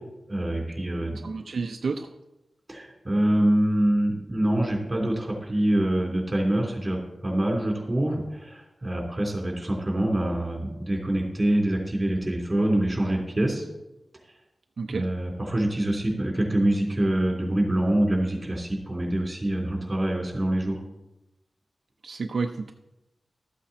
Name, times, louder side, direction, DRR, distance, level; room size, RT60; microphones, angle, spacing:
voice 1, 0.3-1.2 2.7-13.6 14.9-20.8, right 1 dB, 25° right, 0 dB, 3.4 m, -25 dB
voice 2, 1.2-2.1 14.8-15.1 22.0-22.7, right 4 dB, 70° right, 5 dB, 0.6 m, -30 dB
13.0 x 8.4 x 4.3 m, 0.94 s
wide cardioid pair, 100°, 0 cm